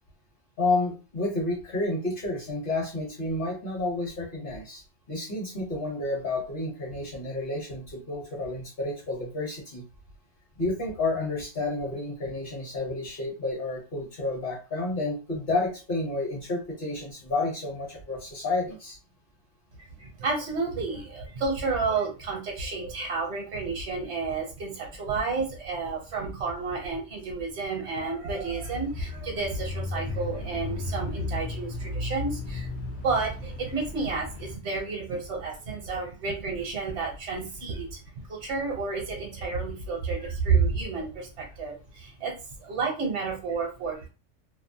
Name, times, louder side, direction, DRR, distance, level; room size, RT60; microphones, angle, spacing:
voice 1, 0.6-4.8 5.1-9.8 10.6-19.0 40.2-40.3, left 2 dB, 50° left, -1 dB, 1.1 m, -30 dB
voice 2, 20.0-32.7 33.0-38.0 38.3-44.1, right 4 dB, 70° right, -1 dB, 1.0 m, -30 dB
Bicycle / Mechanisms, 28.4-34.6, left 2 dB, 70° left, 0.8 m, -35 dB
2.5 x 2.0 x 2.7 m, 0.32 s
omnidirectional pair, 1.2 m